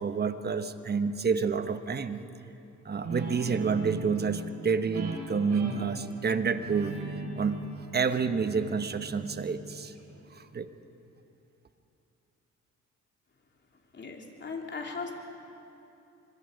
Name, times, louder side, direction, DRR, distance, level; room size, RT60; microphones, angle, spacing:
voice 1, 0.0-2.2 2.8-7.6 7.9-9.9 10.3-10.7, right 5 dB, 35° right, 10 dB, 1.1 m, -29 dB
Guitar, 3.0-10.2, right 3 dB, 70° right, 4.6 m, -39 dB
voice 2, 13.9-15.1, left 4 dB, 35° left, 1 dB, 3.1 m, -38 dB
25.5 x 22.0 x 5.2 m, 2.8 s
cardioid pair, 90°, 30 cm